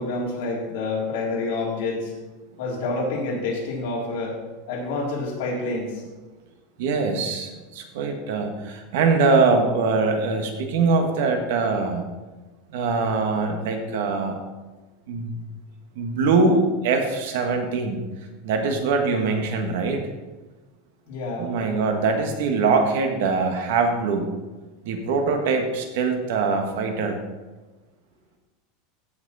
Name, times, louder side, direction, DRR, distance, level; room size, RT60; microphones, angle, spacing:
voice 1, 0.0-2.1 2.6-4.4 4.7-6.0 21.1-21.5, left 3 dB, 60° left, -3 dB, 3.3 m, -28 dB
voice 2, 6.8-12.0 12.7-14.4 15.1-15.4 15.9-18.0 18.4-20.0 21.4-24.3 24.8-27.2, right 4 dB, 65° right, 5 dB, 1.6 m, -23 dB
15.5 x 6.1 x 4.2 m, 1.2 s
supercardioid pair, 180°, 0 cm